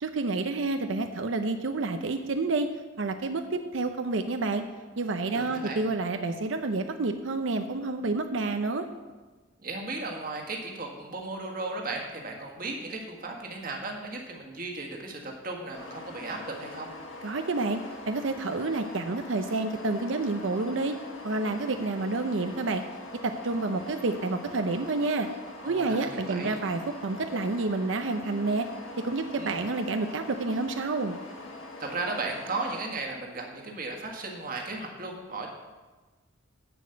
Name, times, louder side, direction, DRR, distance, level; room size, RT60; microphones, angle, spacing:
voice 1, 0.0-2.7 3.0-4.6 5.0-8.9 17.2-17.8 18.1-21.0 21.2-22.8 23.2-25.3 25.6-28.7 29.0-31.2, right 3 dB, 70° right, 7 dB, 0.6 m, -29 dB
voice 2, 5.3-5.8 9.6-16.9 25.6-26.6 29.4-29.7 31.8-35.5, right 3 dB, 45° right, 1 dB, 1.6 m, -36 dB
sound 1, 15.7-32.9, left 2 dB, 80° left, 1.6 m, -43 dB
10.5 x 5.2 x 7.8 m, 1.3 s
head